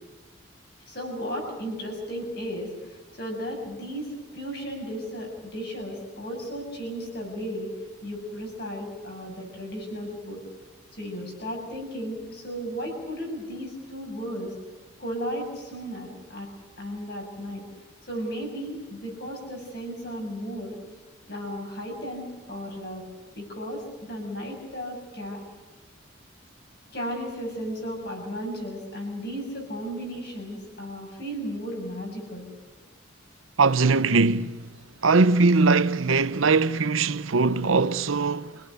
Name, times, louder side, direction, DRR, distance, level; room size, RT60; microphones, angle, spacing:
voice 1, 0.9-7.7 8.0-10.4 10.9-14.5 15.0-16.5 16.8-17.6 18.1-20.8 21.3-23.0 23.4-25.4 26.9-32.5, equal, 50° left, 7.2 m, -35 dB
voice 2, 33.6-34.6 35.0-38.6, right 3 dB, 85° right, 0.8 m, -21 dB
26.5 x 18.0 x 8.3 m
head